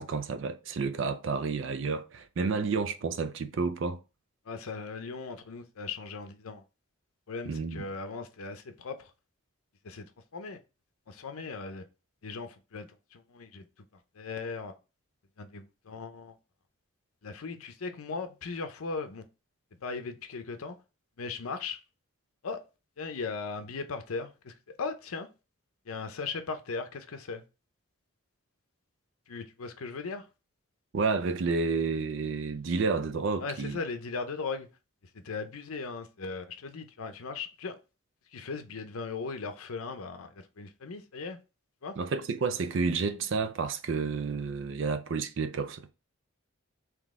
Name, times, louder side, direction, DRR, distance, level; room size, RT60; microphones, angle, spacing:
voice 1, 0.0-4.0 7.5-7.9 30.9-33.8 42.0-45.9, right 4 dB, 60° right, 0.4 m, -30 dB
voice 2, 4.5-6.6 7.3-9.1 9.8-10.6 11.1-11.8 12.2-13.7 14.2-14.7 15.4-16.4 17.2-19.2 19.8-20.8 21.2-21.8 22.4-22.6 23.0-25.3 25.9-27.4 29.3-30.3 33.4-34.7 35.1-37.7 38.3-41.4 41.8-41.9, left 4 dB, 90° left, 0.6 m, -38 dB
3.9 x 2.9 x 3.6 m
head